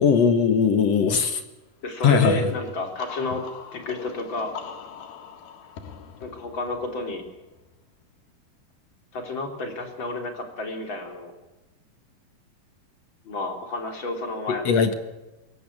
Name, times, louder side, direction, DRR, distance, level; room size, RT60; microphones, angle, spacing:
voice 1, 0.0-1.4 2.0-2.4 14.5-14.9, left 6 dB, 60° left, 8 dB, 2.0 m, -19 dB
voice 2, 1.8-3.4 3.7-4.5 6.2-7.2 9.1-11.3 13.2-14.6, left 2 dB, 35° left, 4 dB, 3.9 m, -30 dB
sound 1, 2.2-7.8, left 7 dB, 90° left, 3.9 m, -42 dB
22.5 x 17.0 x 8.7 m, 1.1 s
omnidirectional pair, 4.2 m